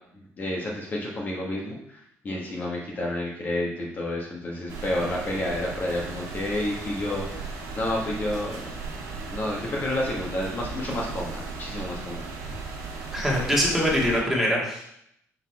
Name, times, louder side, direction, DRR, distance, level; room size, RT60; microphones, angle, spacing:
voice 1, 0.1-8.6 9.3-12.3, left 1 dB, 35° left, -3 dB, 1.1 m, -30 dB
sound 1, 4.7-14.2, right 4 dB, 70° right, 1.5 m, -36 dB
voice 2, 13.1-14.8, equal, 5° right, -4 dB, 1.8 m, -23 dB
6.2 x 4.0 x 4.7 m, 0.76 s
cardioid pair, 140°, 5 cm